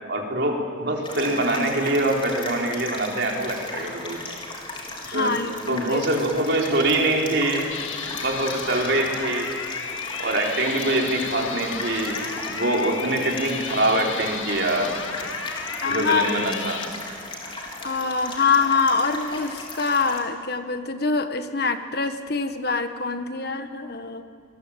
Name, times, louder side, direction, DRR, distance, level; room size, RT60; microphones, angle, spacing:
voice 1, 0.1-4.2 5.1-7.7 8.2-9.5 10.2-14.9 15.8-16.8, right 1 dB, 55° right, 0 dB, 4.4 m, -24 dB
sound 1, 1.0-20.2, left 2 dB, 25° left, 4.1 m, -36 dB
voice 2, 5.1-6.0 15.8-16.4 17.8-24.2, left 4 dB, 50° left, 8 dB, 1.6 m, -25 dB
sound 2, 7.7-16.9, left 6 dB, 80° left, 2.0 m, -34 dB
27.5 x 21.5 x 8.9 m, 2.2 s
head